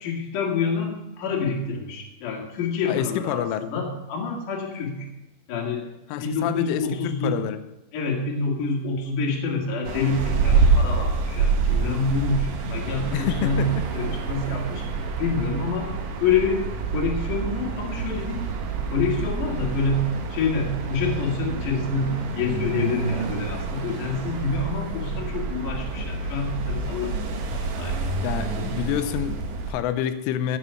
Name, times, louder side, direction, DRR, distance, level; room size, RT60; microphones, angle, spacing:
voice 1, 0.0-5.1 5.5-5.8 6.2-7.3 7.9-14.9 15.2-15.9 16.2-16.6 16.9-18.4 18.8-20.0 20.3-28.0, left 4 dB, 50° left, -1 dB, 2.9 m, -27 dB
voice 2, 2.9-3.6 6.1-7.6 13.1-13.8 28.2-30.6, left 10 dB, 85° left, 10 dB, 3.1 m, -28 dB
sound 1, 9.8-29.7, right 4 dB, 70° right, 2.1 m, -27 dB
15.5 x 6.3 x 5.7 m, 0.97 s
omnidirectional pair, 5.7 m